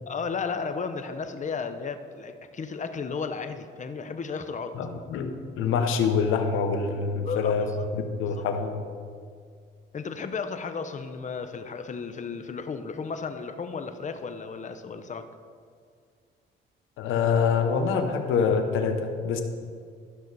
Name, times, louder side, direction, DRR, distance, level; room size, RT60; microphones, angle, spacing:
voice 1, 0.1-4.8 7.3-7.9 8.4-8.5 9.9-15.3, left 5 dB, 40° left, 9 dB, 0.8 m, -34 dB
voice 2, 4.7-8.8 17.0-19.4, left 5 dB, 90° left, 6 dB, 0.9 m, -25 dB
13.0 x 6.1 x 4.1 m, 2.1 s
cardioid pair, 90°, 20 cm